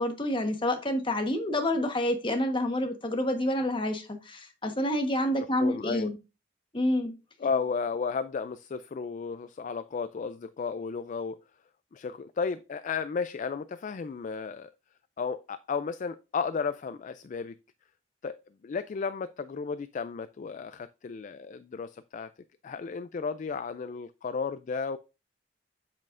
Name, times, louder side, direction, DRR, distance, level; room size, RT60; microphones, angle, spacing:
voice 1, 0.0-6.2 6.7-7.1, left 1 dB, 30° left, 1.2 m, -28 dB
voice 2, 5.4-6.1 7.4-11.4 11.9-14.7 15.2-17.6 18.2-18.4 18.6-22.3 22.6-25.0, left 5 dB, 45° left, 0.3 m, -33 dB
7.5 x 7.4 x 2.5 m
head